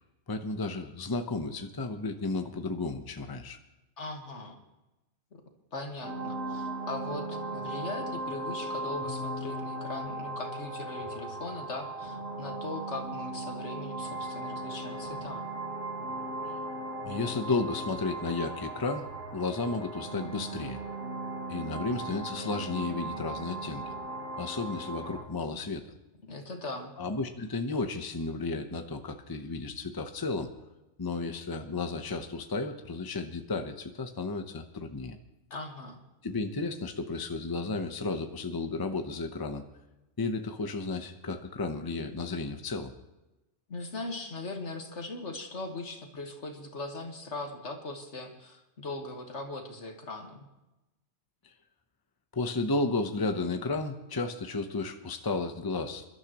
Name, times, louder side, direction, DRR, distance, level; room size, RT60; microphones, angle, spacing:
voice 1, 0.3-3.6 17.0-20.8 21.5-23.9 24.4-25.9 27.0-30.5 31.0-35.2 36.2-39.6 40.2-42.9 52.3-56.1, left 3 dB, 20° left, 6 dB, 0.8 m, -33 dB
voice 2, 4.0-4.6 5.3-5.4 5.7-15.5 26.2-26.9 35.5-36.0 43.7-50.5, left 2 dB, 75° left, 3 dB, 2.0 m, -40 dB
sound 1, 6.0-25.2, right 2 dB, 60° right, 4.2 m, -37 dB
28.0 x 12.0 x 3.0 m, 0.99 s
omnidirectional pair, 1.2 m